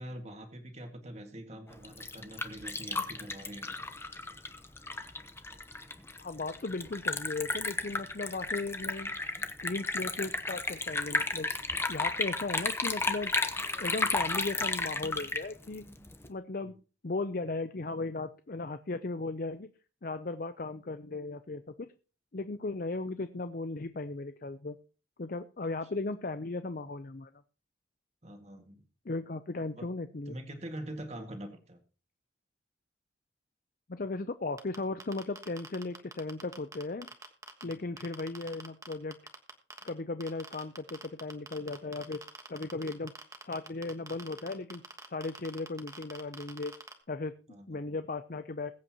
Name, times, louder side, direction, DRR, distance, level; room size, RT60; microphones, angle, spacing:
voice 1, 0.0-3.8 16.6-16.7 28.2-28.8 29.7-29.9 30.3-31.8 37.6-37.9 47.5-47.8, right 1 dB, 35° right, 5 dB, 2.0 m, -44 dB
Liquid, 1.7-16.3, left 3 dB, 15° left, 0.9 m, -33 dB
voice 2, 6.2-9.1 9.6-11.5 11.9-13.4 13.8-15.8 16.3-16.7 17.0-19.7 20.0-21.9 22.3-24.8 25.2-27.3 29.0-30.4 33.9-37.1 37.6-39.1 39.8-42.2 42.5-43.1 43.4-44.8 45.1-46.7 47.1-47.3 47.7-48.7, left 3 dB, 50° left, 10 dB, 0.6 m, -36 dB
sound 1, 34.6-37.7 38.0-39.9 40.2-46.9, right 3 dB, 15° right, 1.3 m, -44 dB
21.5 x 8.3 x 3.0 m, 0.36 s
head